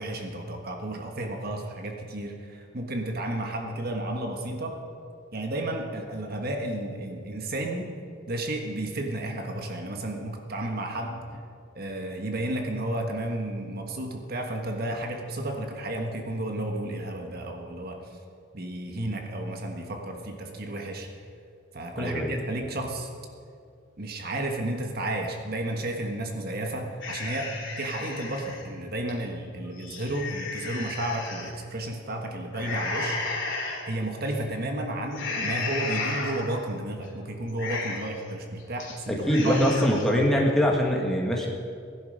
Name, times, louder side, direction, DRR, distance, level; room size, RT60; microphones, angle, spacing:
voice 1, 0.0-4.8 5.3-8.0 8.3-11.2 11.7-18.0 18.5-21.1 21.7-23.1 24.0-33.2 33.8-39.6, right 1 dB, 50° right, 3 dB, 1.4 m, -32 dB
voice 2, 21.9-22.3 39.3-41.5, equal, ahead, -2 dB, 1.7 m, -23 dB
sound 1, 27.0-28.6 29.1-29.2 29.7-31.5 32.5-33.8 34.3-34.6 35.1-36.7 37.0-37.1 37.5-38.2 38.6-39.0 39.2-40.1, left 3 dB, 60° left, 3.1 m, -34 dB
17.0 x 11.0 x 5.1 m, 2.3 s
head